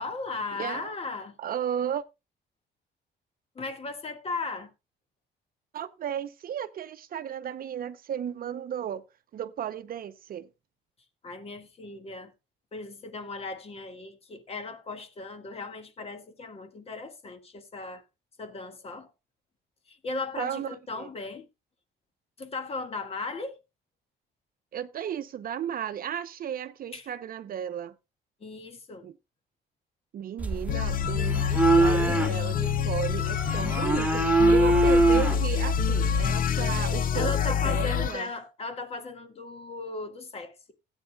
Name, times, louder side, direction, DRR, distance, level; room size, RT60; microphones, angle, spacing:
voice 1, 0.0-1.3 3.6-4.7 11.2-12.3 12.7-18.0 18.4-19.1 19.9-21.4 22.4-23.6 26.9-27.0 28.4-29.1 37.1-40.7, left 3 dB, 30° left, 1.8 m, -37 dB
voice 2, 0.5-0.9 1.4-2.0 5.7-9.0 9.3-10.5 20.4-21.1 24.7-28.0 29.0-29.2 30.1-38.3, right 9 dB, 50° right, 0.7 m, -34 dB
sound 1, 30.4-36.4, right 2 dB, 10° right, 1.8 m, -24 dB
sound 2, 30.7-38.2, left 8 dB, 50° left, 0.7 m, -27 dB
17.0 x 9.0 x 2.3 m
cardioid pair, 150°, 19 cm